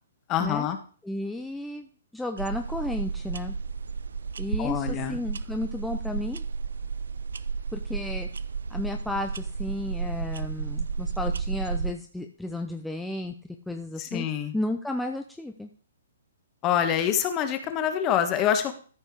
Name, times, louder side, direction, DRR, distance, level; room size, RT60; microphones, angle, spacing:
voice 1, 0.3-0.8 4.6-5.2 14.0-14.5 16.6-18.7, left 9 dB, 25° left, 8 dB, 1.3 m, -26 dB
voice 2, 1.0-3.5 4.4-6.4 7.7-8.3 8.7-13.3 13.7-14.3 14.5-15.7, left 1 dB, 5° left, 3 dB, 0.6 m, -33 dB
sound 1, 2.4-11.9, right 5 dB, 85° right, 0.5 m, -32 dB
13.5 x 5.4 x 4.7 m, 0.42 s
hypercardioid pair, 145°, 0 cm